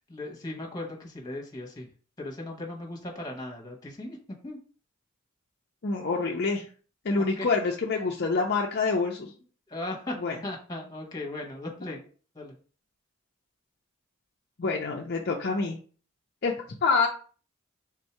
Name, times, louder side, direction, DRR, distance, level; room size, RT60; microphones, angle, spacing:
voice 1, 0.1-1.9 2.2-4.2 4.4-4.6 7.1-7.5 9.7-12.0 12.3-12.5, left 2 dB, 20° left, -1 dB, 1.1 m, -37 dB
voice 2, 5.8-6.7 7.0-9.3 10.2-10.3 14.6-15.8 16.4-16.5 16.8-17.1, left 4 dB, 50° left, 0 dB, 0.5 m, -26 dB
3.7 x 2.7 x 4.4 m, 0.40 s
head